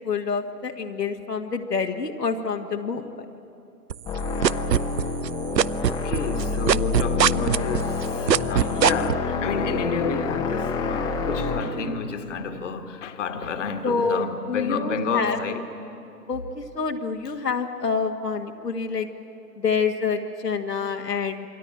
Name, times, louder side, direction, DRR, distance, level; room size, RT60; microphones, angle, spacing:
voice 1, 0.0-3.1 13.8-15.4 16.3-19.1 19.6-21.5, left 5 dB, 75° left, 1.8 m, -27 dB
sound 1, 3.9-5.3 5.6-9.1, right 9 dB, 80° right, 0.6 m, -20 dB
sound 2, 4.1-11.6, left 3 dB, 10° left, 0.9 m, -28 dB
voice 2, 5.9-15.6, left 5 dB, 45° left, 1.8 m, -30 dB
27.5 x 23.0 x 8.8 m
figure-of-eight pair, 130°, 49 cm